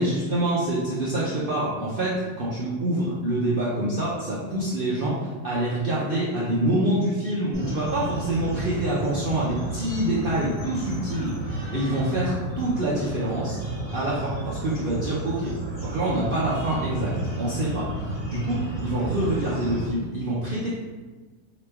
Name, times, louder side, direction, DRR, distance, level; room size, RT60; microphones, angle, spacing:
voice 1, 0.0-13.6 13.9-15.5 15.8-20.7, right 1 dB, 70° right, -7 dB, 0.5 m, -26 dB
sound 1, 7.5-19.9, right 1 dB, 25° right, 1.3 m, -32 dB
3.0 x 2.9 x 3.3 m, 1.3 s
omnidirectional pair, 1.7 m